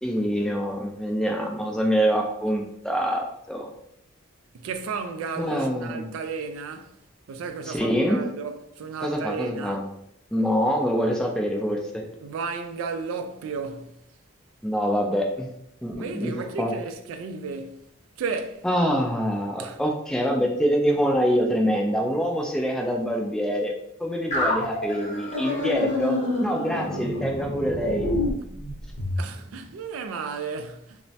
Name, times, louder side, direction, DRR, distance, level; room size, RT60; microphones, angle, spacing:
voice 1, 0.0-3.7 5.4-6.1 7.7-8.2 9.0-9.8 10.3-12.0 14.6-15.5 15.8-16.3 16.6-16.7 18.6-23.7 24.0-28.1, equal, 5° left, 0.3 m, -25 dB
voice 2, 4.5-6.9 7.3-9.8 12.2-13.9 16.0-17.8 18.2-18.7 19.6-19.8 29.2-31.0, right 5 dB, 80° right, 0.3 m, -33 dB
sound 1, 24.3-29.2, left 2 dB, 35° left, 0.7 m, -27 dB
3.1 x 2.0 x 2.7 m
head